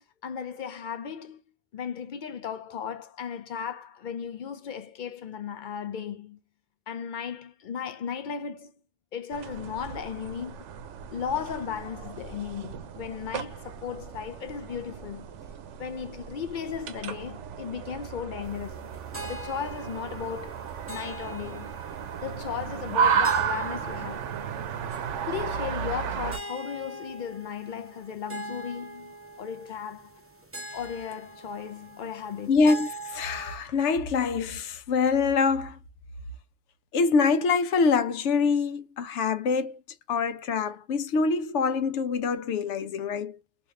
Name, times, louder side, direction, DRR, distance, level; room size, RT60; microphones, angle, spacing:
voice 1, 0.2-1.4 1.7-6.4 6.9-8.7 9.1-10.7 11.1-15.3 15.8-18.9 19.2-20.6 20.9-21.7 22.2-24.3 25.3-30.1 30.7-32.6, left 7 dB, 60° left, 0.5 m, -36 dB
sound 1, 9.3-26.4, right 7 dB, 85° right, 0.9 m, -33 dB
sound 2, 18.4-33.6, right 2 dB, 15° right, 0.7 m, -43 dB
voice 2, 32.5-35.8 36.9-39.8 40.1-43.4, left 4 dB, 80° left, 0.9 m, -25 dB
3.2 x 2.7 x 3.5 m
omnidirectional pair, 1.2 m